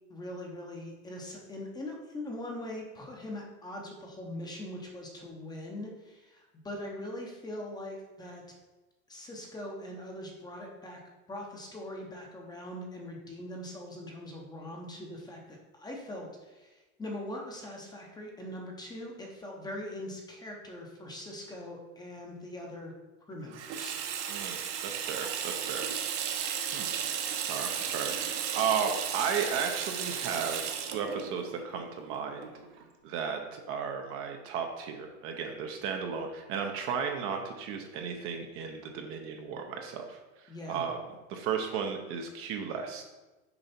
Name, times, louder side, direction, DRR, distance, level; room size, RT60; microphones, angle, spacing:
voice 1, 0.1-8.4 9.1-11.0 11.3-22.9 23.3-24.0 40.5-40.9, left 1 dB, 10° left, 0 dB, 0.8 m, -42 dB
Water tap faucet / Sink (filling or washing), 23.5-32.8, right 8 dB, 60° right, 1.1 m, -34 dB
voice 2, 24.3-25.9 26.7-26.9 27.5-32.5 33.0-41.0 41.3-43.0, right 6 dB, 35° right, 3 dB, 0.7 m, -34 dB
6.8 x 4.7 x 4.3 m, 1.1 s
supercardioid pair, 150°, 41 cm